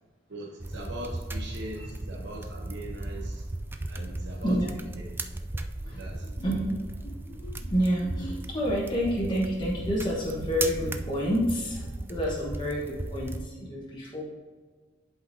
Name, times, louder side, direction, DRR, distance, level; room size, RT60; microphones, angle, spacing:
voice 1, 0.3-3.5 3.9-4.5 5.0-5.1 5.9-6.3, right 1 dB, 70° right, -2 dB, 1.0 m, -41 dB
sound 1, 0.6-13.5, right 2 dB, 10° right, 0.3 m, -36 dB
voice 2, 5.5-14.2, equal, 25° left, -6 dB, 1.3 m, -30 dB
11.0 x 5.2 x 2.7 m, 1.4 s
head